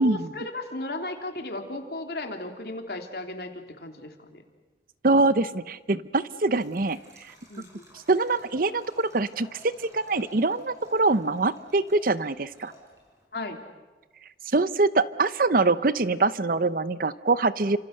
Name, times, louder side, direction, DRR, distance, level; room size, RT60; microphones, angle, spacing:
voice 1, 0.0-4.4 7.5-7.9 13.3-13.6, left 2 dB, 60° left, 4 dB, 3.2 m, -35 dB
voice 2, 5.0-7.0 8.1-12.7 14.5-17.8, right 3 dB, 50° right, 15 dB, 0.8 m, -24 dB
Liquid, 6.4-13.3, left 2 dB, 20° right, 6.0 m, -52 dB
29.5 x 26.5 x 6.6 m, 1.2 s
head